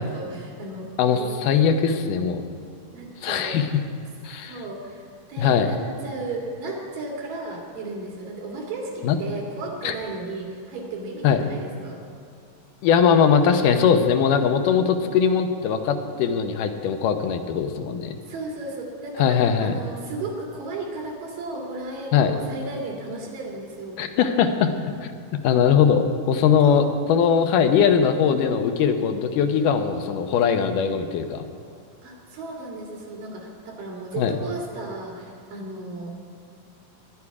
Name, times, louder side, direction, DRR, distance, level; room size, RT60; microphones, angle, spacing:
voice 1, 0.0-1.7 2.9-3.6 4.4-12.0 18.3-24.0 26.6-26.9 32.0-36.1, right 2 dB, 80° right, -1 dB, 4.1 m, -34 dB
voice 2, 1.0-2.4 3.2-3.7 4.2-4.5 5.4-5.7 9.0-9.2 9.8-9.9 11.2-11.4 12.8-18.2 19.2-19.7 22.1-22.3 24.0-24.7 25.4-26.8 27.1-31.4 34.2-34.3, left 7 dB, 75° left, 6 dB, 2.4 m, -20 dB
20.5 x 11.5 x 4.8 m, 2.4 s
omnidirectional pair, 3.9 m